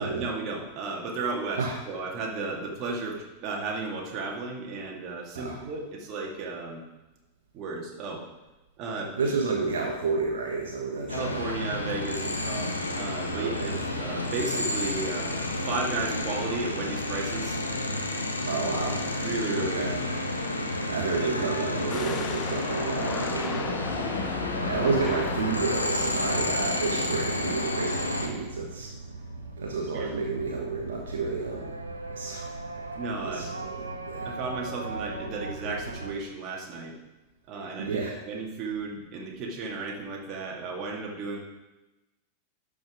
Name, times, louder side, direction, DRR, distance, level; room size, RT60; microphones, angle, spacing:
voice 1, 0.0-6.8 7.5-8.2 8.8-9.3 11.1-12.7 13.0-17.6 19.2-20.0 21.0-21.8 29.9-30.1 33.0-33.5 34.2-37.0 37.5-38.0 38.3-41.4, right 3 dB, 35° right, -1 dB, 2.2 m, -34 dB
voice 2, 9.2-11.4 12.2-12.4 13.3-13.7 18.4-19.0 19.5-19.9 20.9-23.9 24.6-28.9 29.6-31.7 32.1-32.5 33.2-34.3 37.8-38.2, right 4 dB, 65° right, -1 dB, 1.4 m, -30 dB
sound 1, 11.1-28.3, left 1 dB, 80° left, 1.1 m, -30 dB
sound 2, 21.9-27.5, left 7 dB, 20° left, 0.3 m, -37 dB
sound 3, 24.6-36.1, right 3 dB, 80° right, 0.9 m, -39 dB
12.0 x 5.7 x 5.1 m, 1.1 s
figure-of-eight pair, 90°, 0 cm